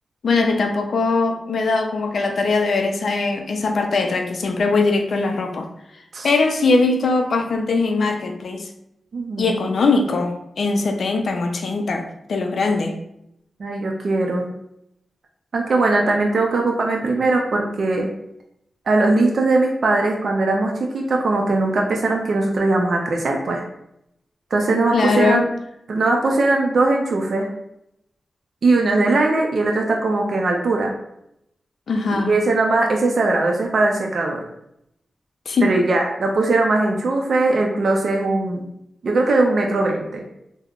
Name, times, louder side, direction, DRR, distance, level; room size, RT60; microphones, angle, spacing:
voice 1, 0.2-5.7 6.2-8.7 9.4-12.9 24.9-25.5 31.9-32.3 35.5-35.7, left 3 dB, 70° left, 4 dB, 0.3 m, -21 dB
voice 2, 9.1-9.7 13.6-14.5 15.5-18.1 18.9-23.6 24.5-25.4 25.9-27.5 28.6-30.9 32.1-34.4 35.6-38.6 39.0-40.2, right 2 dB, 65° right, 0 dB, 0.4 m, -20 dB
3.5 x 2.0 x 2.3 m, 0.78 s
cardioid pair, 80°, 0 cm